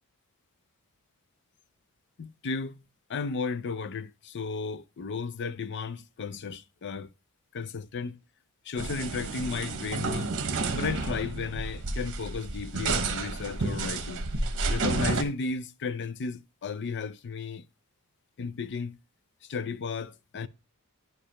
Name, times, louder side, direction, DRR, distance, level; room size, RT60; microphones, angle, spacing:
voice 1, 2.2-2.8 3.1-7.1 7.5-8.2 8.6-10.3 10.7-14.3 14.7-17.6 18.4-19.0 19.5-20.5, left 4 dB, 50° left, 0.5 m, -34 dB
sound 1, 8.8-15.2, right 3 dB, 60° right, 1.0 m, -31 dB
11.0 x 5.0 x 2.8 m
head